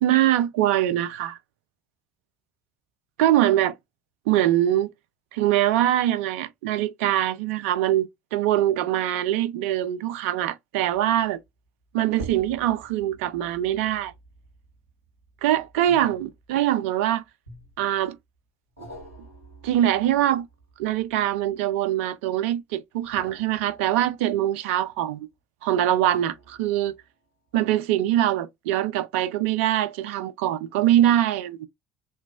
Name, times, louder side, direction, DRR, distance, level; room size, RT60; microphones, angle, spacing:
voice 1, 0.0-1.4 3.2-3.7 4.3-4.9 5.3-11.4 11.9-14.1 15.4-17.2 17.8-18.2 19.6-20.5 20.8-25.3 25.6-26.9 27.5-31.7, right 12 dB, 70° right, 0.3 m, -23 dB
sound 1, 10.9-11.2 12.1-16.8 17.5-18.1 18.8-21.7 22.9-25.0 25.8-27.2 27.7-27.8, right 2 dB, 90° right, 0.9 m, -47 dB
3.0 x 2.2 x 2.4 m
figure-of-eight pair, 60°, 7 cm